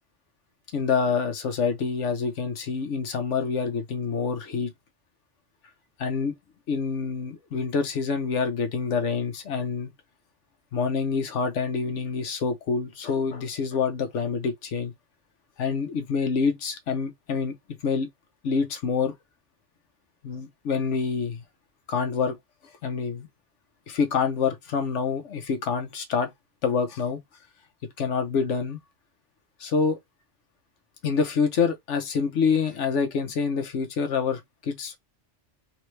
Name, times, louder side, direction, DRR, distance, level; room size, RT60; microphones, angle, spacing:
voice 1, 0.7-4.7 6.0-6.4 6.7-9.9 10.7-14.9 15.6-18.1 18.4-19.1 20.2-21.4 21.9-22.4 22.8-23.3 23.9-26.3 26.6-27.2 28.0-28.8 29.6-30.0 31.0-35.0, left 5 dB, 90° left, 1.2 m, -26 dB
3.5 x 3.1 x 3.2 m
omnidirectional pair, 1.2 m